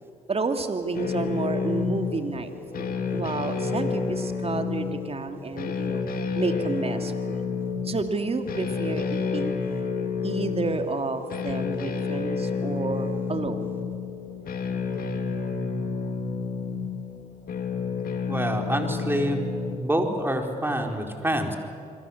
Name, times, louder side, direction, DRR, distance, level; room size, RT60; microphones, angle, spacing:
voice 1, 0.3-6.0 6.3-7.4 7.8-9.5 10.2-13.7, right 3 dB, 35° right, 6 dB, 2.8 m, -30 dB
sound 1, 0.9-19.8, left 5 dB, 60° left, 2.9 m, -30 dB
voice 2, 18.3-19.4 19.8-21.6, right 1 dB, 15° right, 3 dB, 4.4 m, -26 dB
27.0 x 22.0 x 7.4 m, 2.5 s
hypercardioid pair, 45°, 17 cm